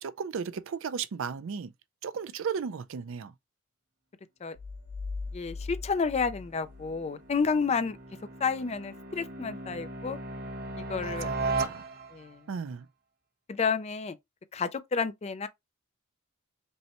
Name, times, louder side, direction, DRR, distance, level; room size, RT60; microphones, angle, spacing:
voice 1, 0.0-1.7 2.0-3.3 11.0-11.8 12.5-12.9, right 6 dB, 65° right, 0.4 m, -35 dB
sound 1, 4.6-7.5, left 3 dB, 85° left, 0.5 m, -40 dB
voice 2, 5.3-8.0 8.4-10.2 10.9-11.3 12.1-12.4 13.5-14.2 14.5-15.5, left 5 dB, 30° left, 0.4 m, -30 dB
sound 2, 6.0-12.4, right 3 dB, 45° right, 1.0 m, -37 dB
5.3 x 2.2 x 2.9 m
head